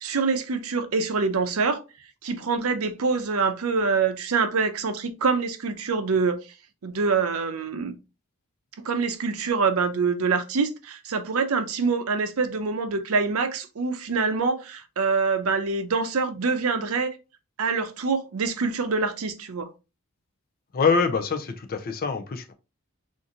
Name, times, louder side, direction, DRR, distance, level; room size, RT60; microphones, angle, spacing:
voice 1, 0.0-1.8 2.2-6.4 6.8-7.9 8.8-17.2 17.6-19.7, right 4 dB, 75° right, 0.6 m, -25 dB
voice 2, 20.7-22.5, left 5 dB, 40° left, 0.4 m, -24 dB
3.8 x 2.5 x 2.8 m
head